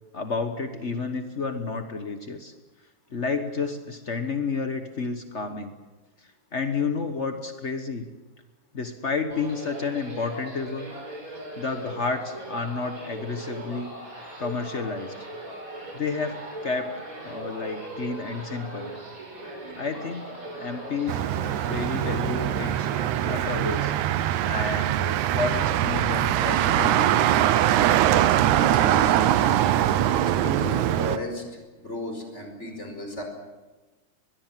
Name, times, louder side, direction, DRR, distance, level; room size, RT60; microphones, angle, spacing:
voice 1, 0.1-2.5 3.1-5.7 6.5-8.1 8.7-10.9 11.6-13.9 14.4-15.1 15.9-16.4 16.6-16.9 17.2-18.9 19.8-20.2 20.5-21.2 21.6-22.9 23.3-23.9 24.4-27.3, left 4 dB, 70° left, 6 dB, 0.6 m, -30 dB
sound 1, 9.3-24.0, right 1 dB, 25° right, 6.4 m, -39 dB
Motor vehicle (road), 21.1-31.2, right 12 dB, 80° right, 2.2 m, -22 dB
voice 2, 28.8-29.7 30.1-33.2, left 1 dB, 20° left, 4 dB, 5.1 m, -36 dB
22.5 x 21.5 x 7.6 m, 1.2 s
omnidirectional pair, 3.4 m